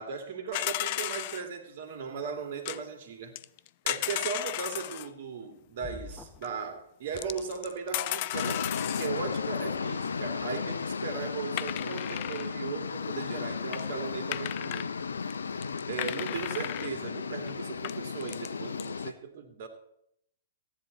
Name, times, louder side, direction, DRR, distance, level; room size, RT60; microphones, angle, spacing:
voice 1, 0.0-3.4 3.8-14.9 15.9-19.7, right 6 dB, 55° right, 2.5 m, -37 dB
sound 1, 0.5-1.4 2.7-2.8 3.4-5.1 6.4-6.5 7.2-9.2 11.6-12.5 13.3-13.4 13.7-13.8 14.3-14.9 15.3-15.4 15.6-16.9 17.5-17.6 17.8-18.5 18.8-18.9, left 16 dB, 45° left, 0.5 m, -34 dB
sound 2, 5.8-6.5 7.1-8.0, left 2 dB, 20° left, 0.9 m, -47 dB
sound 3, 8.3-19.1, left 5 dB, 80° left, 0.7 m, -34 dB
15.5 x 10.5 x 4.2 m
hypercardioid pair, 115°, 0 cm